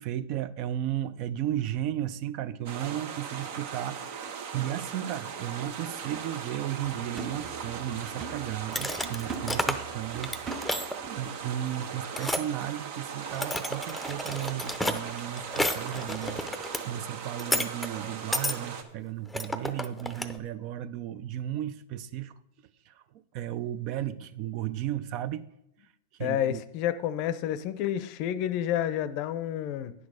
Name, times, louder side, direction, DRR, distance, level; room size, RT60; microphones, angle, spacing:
voice 1, 0.0-22.3 22.9-23.0 23.3-25.4 26.2-26.6, right 12 dB, 45° right, 0.6 m, -34 dB
sound 1, 2.7-18.8, right 7 dB, 60° right, 1.2 m, -39 dB
sound 2, 6.8-11.4 11.8-11.9, right 5 dB, 25° right, 0.9 m, -42 dB
sound 3, 8.7-9.9 10.2-10.9 12.2-12.5 13.2-16.8 17.4-17.9 18.3-18.5 19.3-20.4, left 1 dB, ahead, 0.7 m, -31 dB
voice 2, 26.2-29.9, left 11 dB, 50° left, 0.6 m, -29 dB
9.7 x 6.3 x 5.0 m
hypercardioid pair, 125°, 0 cm